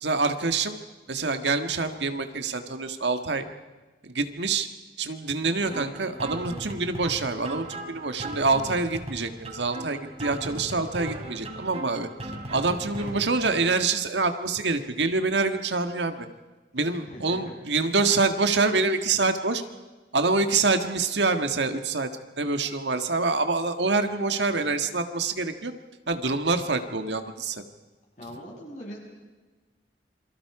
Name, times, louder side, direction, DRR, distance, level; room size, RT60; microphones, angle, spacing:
voice 1, 0.0-0.8 1.1-3.4 4.0-4.7 5.0-12.1 12.5-16.2 16.7-19.6 20.1-22.1 22.4-25.7 26.1-27.6, right 3 dB, 80° right, 7 dB, 1.7 m, -26 dB
sound 1, 5.7-13.7, right 1 dB, 35° right, 4.0 m, -38 dB
voice 2, 16.8-17.5 28.2-29.0, equal, 45° left, -1 dB, 7.2 m, -42 dB
28.0 x 23.5 x 4.9 m, 1.3 s
head